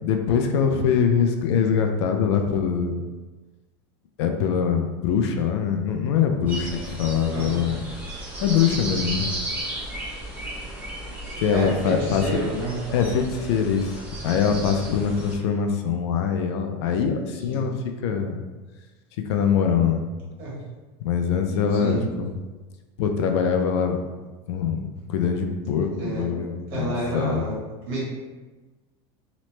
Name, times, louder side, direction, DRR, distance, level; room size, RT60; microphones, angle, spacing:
voice 1, 0.0-2.9 4.2-7.8 8.4-9.3 11.4-12.2 12.9-14.0 14.2-17.7 18.0-18.4 19.3-20.0 21.0-22.3 23.0-24.0 24.5-27.4, left 7 dB, 80° left, 5 dB, 0.4 m, -23 dB
sound 1, 6.5-15.4, right 1 dB, 15° right, 0.6 m, -34 dB
voice 2, 7.3-7.6 11.2-12.7 17.3-17.7 20.4-20.6 21.7-22.1 26.0-26.2 26.7-27.5 27.8-28.0, right 1 dB, 50° right, -7 dB, 1.3 m, -30 dB
2.9 x 2.1 x 3.1 m, 1.2 s
supercardioid pair, 160°, 14 cm